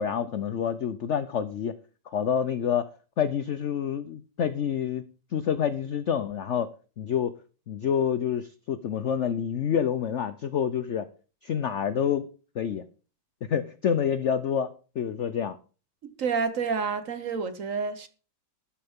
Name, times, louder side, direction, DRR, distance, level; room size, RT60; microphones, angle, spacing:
voice 1, 0.0-1.8 2.1-2.9 3.2-5.0 5.3-7.3 7.7-11.1 11.4-12.3 12.5-12.8 13.4-14.7 15.0-15.6, left 8 dB, 80° left, 0.6 m, -27 dB
voice 2, 16.2-18.1, right 5 dB, 50° right, 1.2 m, -29 dB
12.5 x 11.5 x 3.6 m
omnidirectional pair, 2.1 m